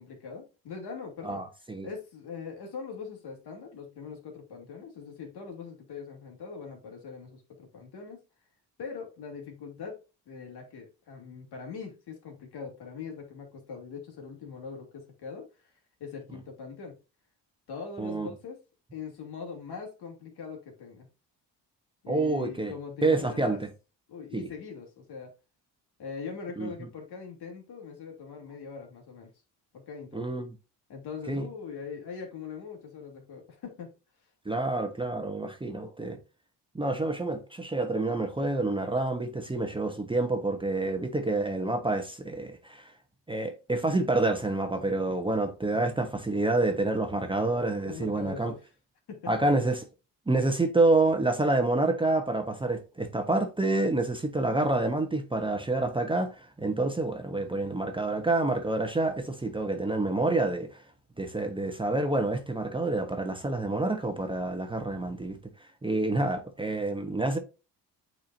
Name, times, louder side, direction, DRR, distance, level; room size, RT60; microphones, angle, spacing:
voice 1, 0.0-1.4 1.8-8.2 8.8-10.0 10.3-15.7 16.0-17.0 17.7-18.6 18.9-21.1 22.0-23.6 24.1-25.3 26.0-29.3 29.7-30.2 30.9-33.9 45.7-45.9 47.8-48.6 49.1-49.3, left 5 dB, 65° left, 2.5 m, -41 dB
voice 2, 1.2-1.9 18.0-18.3 22.1-22.7 23.0-23.6 24.3-24.5 26.6-26.7 30.1-30.6 31.3-31.5 34.5-36.2 36.7-42.9 43.3-48.5 49.3-49.8 50.3-60.8 61.2-65.4 65.8-67.4, right 2 dB, 10° right, 0.9 m, -28 dB
8.4 x 4.5 x 2.6 m
cardioid pair, 95°, 42 cm